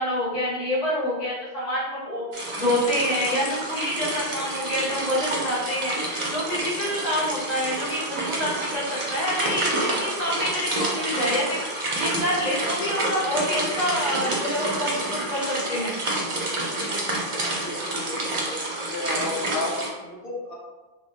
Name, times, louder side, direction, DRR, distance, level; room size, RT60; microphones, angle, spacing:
voice 1, 0.0-2.2 2.6-5.9 6.3-11.6 11.9-16.0, left 1 dB, 85° left, -9 dB, 1.6 m, -27 dB
sound 1, 2.3-19.9, right 2 dB, 50° right, 0.4 m, -29 dB
voice 2, 17.6-18.6 18.9-20.5, left 2 dB, 55° left, -4 dB, 0.9 m, -33 dB
3.4 x 2.0 x 2.7 m, 1.2 s
omnidirectional pair, 1.3 m